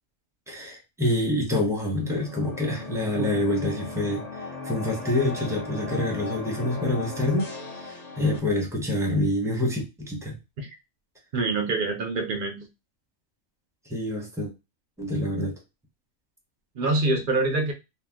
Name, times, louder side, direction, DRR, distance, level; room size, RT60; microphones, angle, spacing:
voice 1, 0.5-7.5 7.8-10.4 13.9-14.5 15.0-15.6, left 1 dB, 5° right, 0.5 m, -27 dB
sound 1, 2.0-8.4, left 3 dB, 45° left, 0.5 m, -38 dB
voice 2, 11.3-12.7 16.8-17.7, right 2 dB, 60° right, 0.5 m, -25 dB
2.8 x 2.0 x 3.4 m
omnidirectional pair, 1.4 m